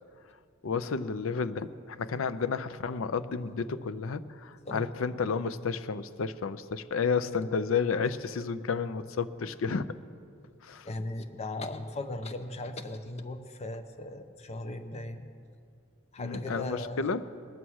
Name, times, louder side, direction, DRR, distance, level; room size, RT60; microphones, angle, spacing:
voice 1, 0.6-9.9 10.6-10.9 16.2-17.2, left 5 dB, 75° left, 13 dB, 0.5 m, -31 dB
voice 2, 10.7-15.3 16.1-17.1, left 2 dB, 30° left, 7 dB, 0.7 m, -38 dB
20.0 x 7.1 x 6.3 m, 2.3 s
head